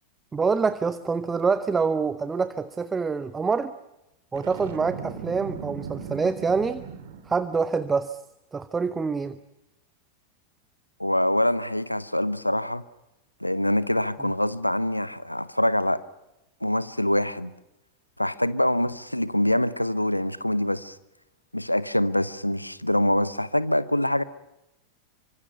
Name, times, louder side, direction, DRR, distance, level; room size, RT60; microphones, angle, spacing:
voice 1, 0.3-3.7 4.3-6.8 7.2-8.2 8.5-9.4 14.2-14.3, right 5 dB, 15° right, 0.8 m, -26 dB
Boom, 4.3-7.5, right 7 dB, 55° right, 2.7 m, -38 dB
voice 2, 11.0-12.8 13.4-16.0 16.6-17.5 18.2-21.0 21.5-24.2, left 1 dB, 85° left, 0.8 m, -24 dB
26.5 x 25.0 x 5.7 m
figure-of-eight pair, 90°, 0 cm